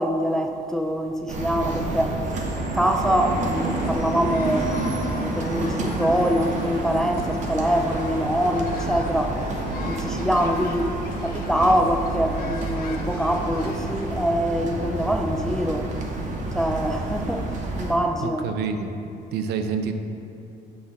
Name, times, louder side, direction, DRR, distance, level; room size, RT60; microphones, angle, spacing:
voice 1, 0.0-2.2 2.7-4.8 5.1-9.4 9.8-15.9 16.5-18.5, equal, 5° left, 3 dB, 0.3 m, -24 dB
sound 1, 1.3-17.9, right 2 dB, 45° right, 0.8 m, -29 dB
sound 2, 3.5-14.1, left 5 dB, 60° left, 0.5 m, -41 dB
voice 2, 18.2-18.9 19.3-19.9, right 6 dB, 75° right, 7 dB, 0.5 m, -27 dB
5.8 x 3.2 x 5.5 m, 2.8 s
cardioid pair, 110°, 17 cm